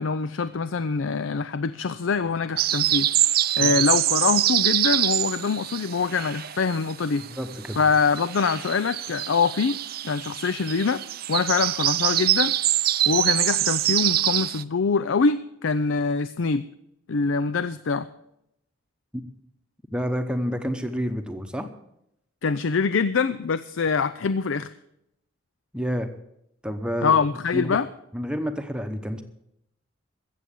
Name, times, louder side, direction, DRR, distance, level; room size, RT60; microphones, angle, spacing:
voice 1, 0.0-3.1 3.6-7.3 7.8-9.8 10.0-11.0 11.3-12.6 13.1-16.7 17.1-18.1 22.4-24.7 27.0-27.9, left 5 dB, 75° left, 14 dB, 0.5 m, -24 dB
sound 1, 2.6-6.9 7.2-14.6, right 13 dB, 50° right, 0.5 m, -24 dB
voice 2, 7.2-7.8 19.1-19.2 19.9-21.7 25.7-26.1 26.6-27.2 27.5-27.8 28.1-29.2, equal, 5° right, 6 dB, 0.9 m, -29 dB
15.0 x 7.8 x 8.3 m, 0.79 s
head